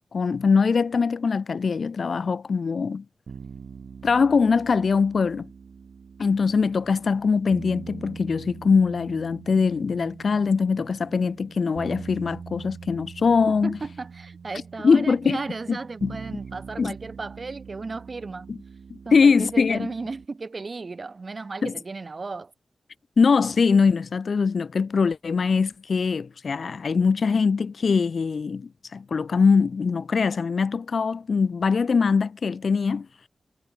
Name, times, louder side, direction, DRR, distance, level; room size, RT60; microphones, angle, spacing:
voice 1, 0.1-3.0 4.0-5.5 6.2-13.8 14.8-15.4 16.0-16.2 16.8-16.9 18.5-18.6 19.1-19.9 21.6-21.7 23.2-33.1, left 5 dB, 70° left, 0.4 m, -22 dB
sound 1, 3.3-20.3, right 6 dB, 80° right, 4.8 m, -43 dB
voice 2, 13.6-18.5 19.0-22.5, right 3 dB, 50° right, 2.2 m, -35 dB
wide cardioid pair, 90°, 0 cm